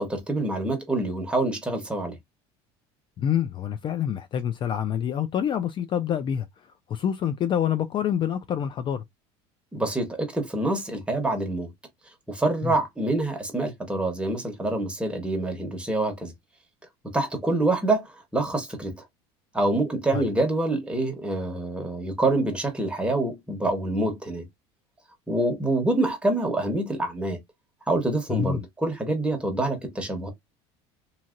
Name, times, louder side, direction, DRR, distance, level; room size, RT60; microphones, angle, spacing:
voice 1, 0.0-2.1 9.7-11.7 12.3-16.3 17.1-19.0 19.5-24.5 25.3-27.4 27.9-30.3, right 2 dB, 10° right, 1.2 m, -26 dB
voice 2, 3.2-6.5 6.9-9.0 12.6-12.7 20.1-20.3 28.3-28.6, left 9 dB, 35° left, 0.4 m, -26 dB
2.9 x 2.7 x 2.4 m
supercardioid pair, 105°, 14 cm